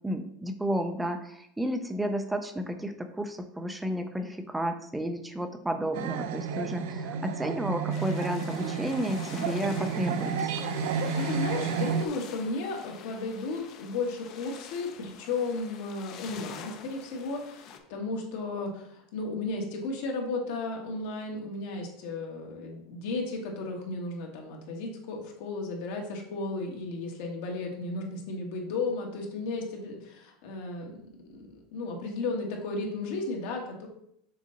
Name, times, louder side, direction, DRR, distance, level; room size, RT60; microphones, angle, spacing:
voice 1, 0.0-10.5, right 1 dB, 5° right, 7 dB, 0.4 m, -32 dB
sound 1, 5.9-12.1, right 6 dB, 75° right, 0.4 m, -31 dB
sound 2, 7.9-17.8, left 7 dB, 40° left, 0.6 m, -46 dB
voice 2, 10.9-31.0 31.3-33.9, left 3 dB, 70° left, 1 dB, 1.5 m, -34 dB
6.4 x 3.9 x 3.9 m, 0.72 s
supercardioid pair, 160°, 0 cm